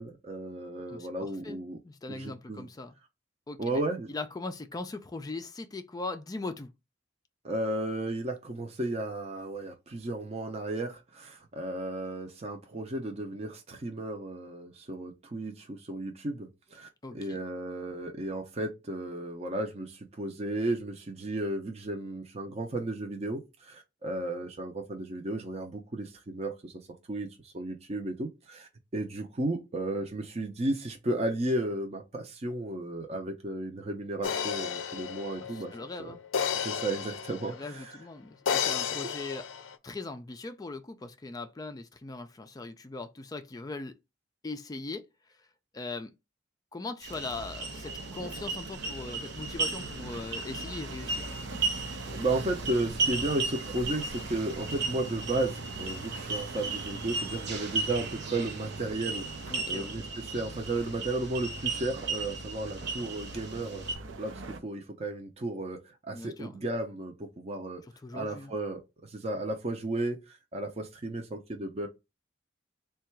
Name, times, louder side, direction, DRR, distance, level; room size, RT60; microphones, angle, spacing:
voice 1, 0.0-1.8 2.1-2.7 3.6-4.1 7.4-16.9 17.1-26.7 27.1-35.7 36.0-36.2 36.6-37.9 52.1-65.8 66.1-67.8 68.1-71.9, right 2 dB, 35° right, 0.6 m, -34 dB
voice 2, 0.9-2.9 3.5-3.8 4.1-6.7 17.0-17.4 35.4-36.2 37.5-39.5 39.8-43.9 44.4-45.5 45.7-46.1 46.7-51.3 59.5-60.0 66.1-66.6 68.0-68.6, left 3 dB, 20° left, 0.3 m, -40 dB
sound 1, 34.2-37.7 38.5-39.7, left 7 dB, 85° left, 0.5 m, -32 dB
sound 2, 47.0-64.0, right 3 dB, 60° right, 1.1 m, -36 dB
sound 3, 47.1-64.6, right 2 dB, 85° right, 0.6 m, -42 dB
3.7 x 2.3 x 4.4 m
head